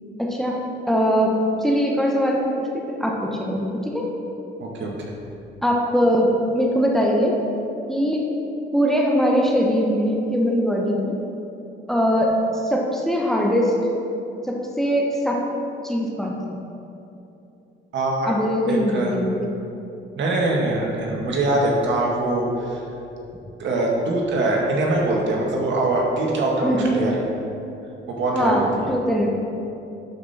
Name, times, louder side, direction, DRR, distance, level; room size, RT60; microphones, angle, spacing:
voice 1, 0.2-0.6 0.9-4.1 5.6-7.4 7.9-8.3 8.7-11.2 11.9-12.4 12.6-13.8 14.4-15.4 15.8-16.6 18.3-19.5 26.6-27.1 28.3-29.3, equal, ahead, -1 dB, 1.2 m, -21 dB
voice 2, 4.6-4.9 17.9-18.3 18.7-19.1 20.1-22.8 23.6-27.1 28.1-28.9, right 2 dB, 70° right, -2 dB, 1.8 m, -23 dB
11.5 x 5.3 x 4.3 m, 2.8 s
cardioid pair, 90°, 20 cm